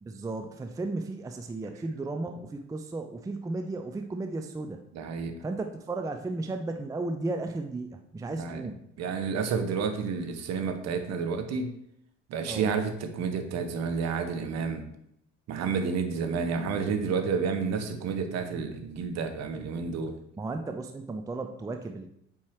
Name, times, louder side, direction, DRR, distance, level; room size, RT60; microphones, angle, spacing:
voice 1, 0.0-4.8 5.4-8.8 12.5-12.7 20.4-22.1, right 2 dB, 10° right, 6 dB, 0.5 m, -34 dB
voice 2, 4.9-5.3 8.3-8.6 9.0-11.7 12.3-14.8 15.5-20.1, right 5 dB, 45° right, 7 dB, 1.0 m, -30 dB
8.4 x 4.6 x 3.1 m, 0.74 s
figure-of-eight pair, 55°, 37 cm